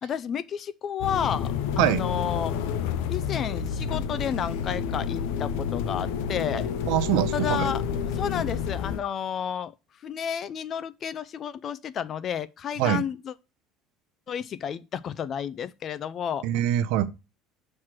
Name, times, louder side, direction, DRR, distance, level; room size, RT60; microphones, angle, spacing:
voice 1, 0.0-2.5 3.1-6.7 7.3-7.8 8.1-9.7 10.0-13.3 14.3-16.5, left 8 dB, 35° left, 0.4 m, -31 dB
sound 1, 1.0-9.0, left 7 dB, 85° left, 0.6 m, -29 dB
voice 2, 6.9-7.7 12.8-13.0 16.4-17.1, right 13 dB, 75° right, 0.5 m, -24 dB
6.1 x 3.2 x 5.8 m
cardioid pair, 135°, 0 cm